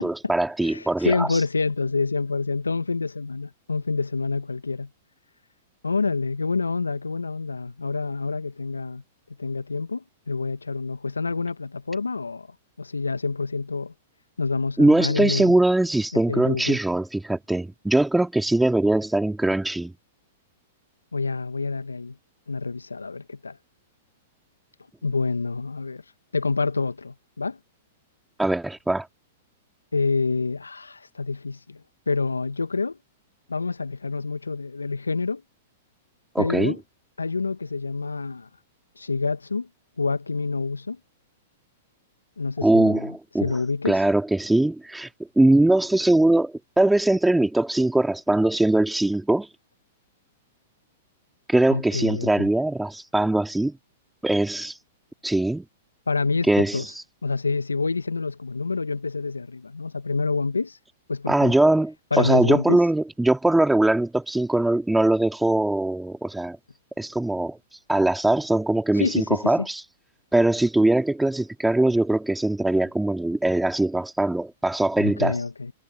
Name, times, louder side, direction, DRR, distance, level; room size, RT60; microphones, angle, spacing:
voice 1, 0.0-1.4 14.8-19.9 28.4-29.1 36.3-36.7 42.6-43.5 43.8-45.1 45.4-49.5 51.5-53.7 54.2-54.8 55.2-55.6 56.5-57.0 61.3-66.6 67.0-67.6 67.9-69.8 70.3-75.4, right 2 dB, 5° right, 2.5 m, -21 dB
voice 2, 0.6-4.9 5.8-9.0 9.4-12.5 12.8-13.9 14.4-15.5 16.1-16.8 21.1-22.1 22.5-23.6 25.0-26.0 26.3-27.6 29.9-33.0 33.5-35.4 36.4-36.8 37.2-38.5 39.0-39.7 40.0-41.0 42.4-43.1 43.4-44.0 51.7-52.5 56.1-56.8 57.2-60.8 61.1-61.5 62.1-62.8 69.0-69.7 75.0-75.7, left 4 dB, 85° left, 1.5 m, -27 dB
figure-of-eight pair, 105°, 0 cm